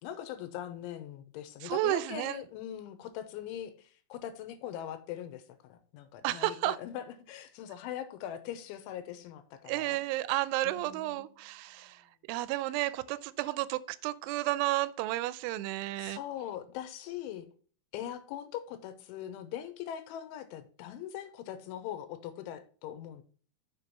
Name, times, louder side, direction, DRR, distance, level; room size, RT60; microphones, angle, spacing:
voice 1, 0.0-10.0 10.6-11.2 16.0-17.5 17.9-23.2, left 10 dB, 85° left, 3.2 m, -41 dB
voice 2, 1.6-2.4 6.2-6.8 9.7-16.2, right 17 dB, 85° right, 2.9 m, -32 dB
7.1 x 6.8 x 4.1 m
omnidirectional pair, 5.6 m